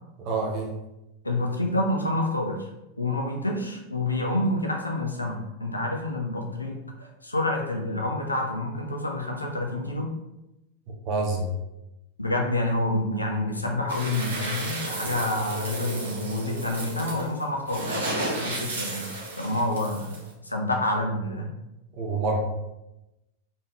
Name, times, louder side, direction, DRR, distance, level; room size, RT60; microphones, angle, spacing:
voice 1, 0.2-0.7 11.1-11.5 22.0-22.4, right 3 dB, 40° right, 0 dB, 1.1 m, -27 dB
voice 2, 1.2-2.7 3.0-10.1 12.2-20.2 20.4-21.5, left 1 dB, 80° left, 1 dB, 0.8 m, -28 dB
sound 1, 13.9-20.3, right 1 dB, 65° right, 1.4 m, -33 dB
4.1 x 3.6 x 3.3 m, 0.95 s
figure-of-eight pair, 90°, 0 cm